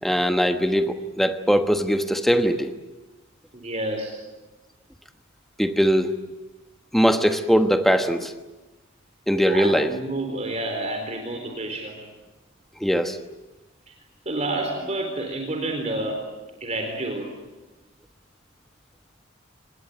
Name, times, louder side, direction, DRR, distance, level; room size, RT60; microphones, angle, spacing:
voice 1, 0.0-2.7 5.6-6.1 6.9-8.3 9.3-9.9 12.8-13.2, equal, ahead, 7 dB, 1.2 m, -21 dB
voice 2, 3.5-4.2 9.5-12.0 13.9-14.0 14.3-16.2 16.6-17.3, right 2 dB, 30° right, 3 dB, 4.0 m, -29 dB
26.5 x 20.5 x 9.1 m, 1.1 s
head